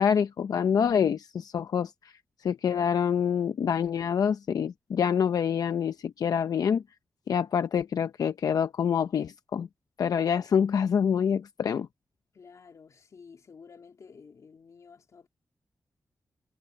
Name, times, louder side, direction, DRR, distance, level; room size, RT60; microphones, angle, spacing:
voice 1, 0.0-1.9 2.4-6.8 7.3-9.7 10.0-11.9, left 7 dB, 90° left, 0.6 m, -26 dB
voice 2, 12.3-15.3, left 5 dB, 60° left, 3.0 m, -51 dB
wide cardioid pair, 175°, 6 cm